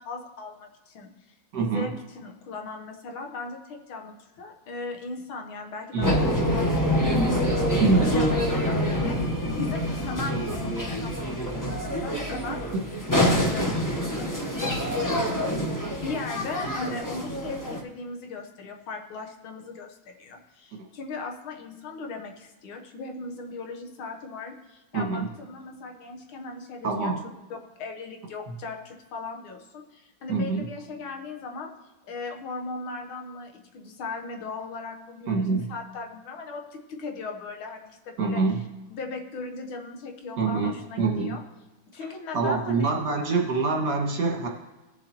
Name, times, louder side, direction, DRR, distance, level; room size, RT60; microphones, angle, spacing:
voice 1, 0.0-12.7 13.1-13.8 14.1-14.8 15.9-31.7 32.1-38.4 38.9-41.4 41.9-42.9, left 3 dB, 80° left, 3 dB, 1.9 m, -38 dB
voice 2, 1.5-1.9 5.9-6.2 7.8-8.2 20.8-20.9 24.9-25.3 26.8-27.2 30.3-30.7 35.3-35.7 38.2-38.6 40.4-41.4 42.3-44.5, right 4 dB, 55° right, 0 dB, 2.2 m, -25 dB
sound 1, 6.0-17.8, equal, 15° left, 0.7 m, -26 dB
18.0 x 7.1 x 3.0 m, 1.1 s
omnidirectional pair, 2.2 m